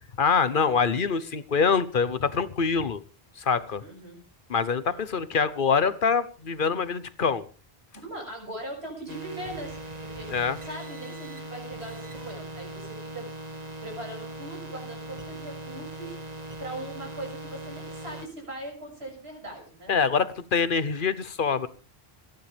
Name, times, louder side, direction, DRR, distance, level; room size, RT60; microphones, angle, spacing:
voice 1, 0.2-3.0 3.4-3.8 4.5-7.4 10.3-10.6 19.9-21.7, left 5 dB, 55° left, 1.1 m, -25 dB
voice 2, 3.8-4.2 7.9-12.8 13.1-13.2 13.8-19.9, right 1 dB, 90° right, 6.8 m, -40 dB
sound 1, 9.1-18.3, right 2 dB, 40° right, 1.7 m, -40 dB
27.5 x 10.5 x 3.4 m
omnidirectional pair, 1.0 m